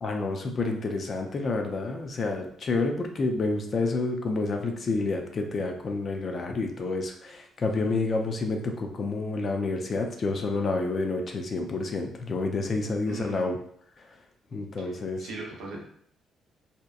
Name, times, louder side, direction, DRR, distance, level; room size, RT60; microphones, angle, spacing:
voice 1, 0.0-13.6 14.5-15.3, left 3 dB, 45° left, 3 dB, 0.4 m, -29 dB
voice 2, 13.1-13.5 14.8-15.9, right 2 dB, 90° right, -1 dB, 0.6 m, -39 dB
2.8 x 2.1 x 2.3 m, 0.65 s
cardioid pair, 90°, 0 cm